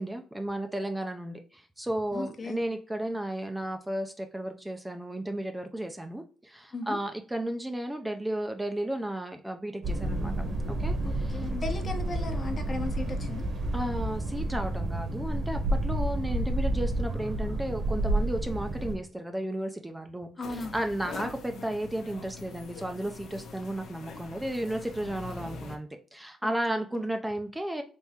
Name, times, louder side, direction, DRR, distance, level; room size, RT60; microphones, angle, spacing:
voice 1, 0.0-10.3 10.7-11.5 13.7-27.8, right 1 dB, 10° right, 5 dB, 0.5 m, -34 dB
voice 2, 2.1-2.6 6.7-7.0 11.0-13.4 20.4-20.7 26.4-26.8, left 2 dB, 40° left, 5 dB, 0.9 m, -36 dB
sound 1, 9.8-19.0, right 1 dB, 55° right, 1.2 m, -30 dB
sound 2, 20.4-25.8, left 3 dB, 70° left, 0.8 m, -43 dB
3.5 x 3.1 x 2.8 m, 0.41 s
cardioid pair, 90°, 0 cm